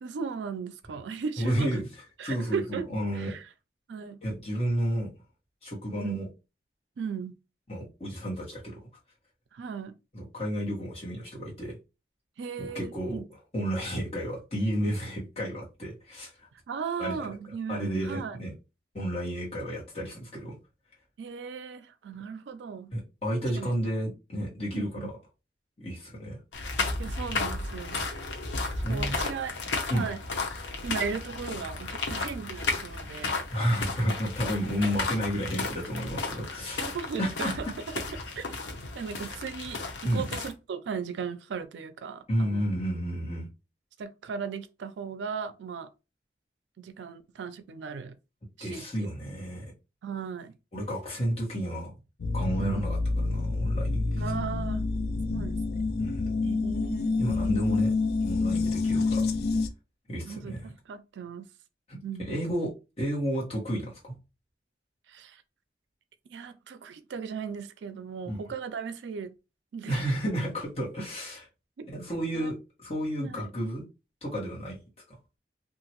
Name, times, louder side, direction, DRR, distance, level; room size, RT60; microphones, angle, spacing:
voice 1, 0.0-1.8 2.2-2.9 3.1-3.5 3.9-4.2 6.0-6.2 7.0-7.3 9.5-10.0 12.4-13.2 16.7-18.4 21.2-22.9 23.6-23.7 24.7-25.1 27.0-28.0 28.8-29.5 29.8-30.2 30.8-33.4 36.8-37.7 38.1-38.4 38.9-42.7 44.0-45.9 46.8-48.2 48.6-48.8 50.0-50.5 52.6-52.9 54.2-54.9 55.3-55.6 56.4-57.2 60.3-61.5 62.0-62.4 65.1-65.4 66.3-69.3 69.7-70.0 71.8-71.9 72.3-72.5 73.2-73.5, right 6 dB, 85° right, 0.4 m, -37 dB
voice 2, 1.4-1.8 2.2-3.3 4.2-5.1 5.6-6.3 7.7-8.9 10.1-11.8 12.6-13.2 13.5-16.5 17.0-17.2 17.7-18.5 18.9-20.6 22.9-25.1 25.8-26.4 28.8-29.2 29.9-30.1 33.5-36.8 37.2-37.6 40.0-40.2 42.3-43.5 48.6-49.6 50.7-51.9 52.3-53.0 53.2-54.2 56.0-56.2 57.2-57.9 58.2-59.3 60.1-60.6 61.9-62.0 62.3-62.7 63.0-64.1 68.2-68.4 69.8-71.5 71.9-73.8 74.2-74.8, equal, 35° left, 1.3 m, -31 dB
sound 1, 26.5-40.5, left 3 dB, 90° left, 0.7 m, -34 dB
sound 2, 52.2-59.7, left 3 dB, 60° left, 0.4 m, -28 dB
2.8 x 2.5 x 2.9 m
head